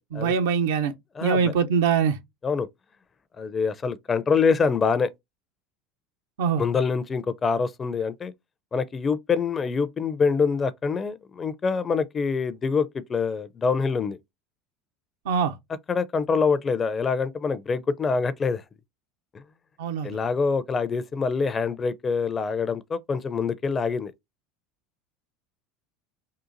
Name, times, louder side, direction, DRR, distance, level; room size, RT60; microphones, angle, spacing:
voice 1, 0.1-0.9 1.2-2.2 6.4-6.6 15.3-15.6 19.8-20.2, right 6 dB, 75° right, 0.5 m, -23 dB
voice 2, 1.2-1.5 2.4-2.7 3.4-5.1 6.6-8.3 8.7-14.2 15.9-18.6 19.3-19.4 20.0-24.1, left 5 dB, 30° left, 0.4 m, -25 dB
3.8 x 2.5 x 2.5 m
hypercardioid pair, 80°, 0 cm